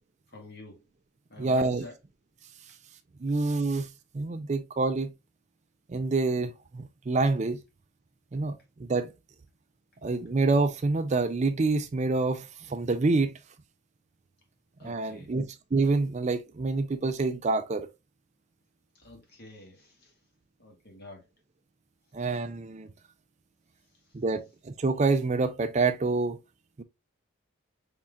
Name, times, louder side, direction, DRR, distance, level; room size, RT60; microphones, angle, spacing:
voice 1, 0.3-0.8 1.3-1.9 14.8-15.3 18.9-20.1 20.6-21.2, left 1 dB, 45° left, 1.6 m, -47 dB
voice 2, 1.4-1.9 3.2-5.1 5.9-7.6 8.3-9.1 10.0-13.3 14.8-17.9 22.1-22.9 24.1-26.4 26.8-26.9, right 3 dB, 30° right, 0.4 m, -27 dB
5.6 x 3.6 x 2.3 m
head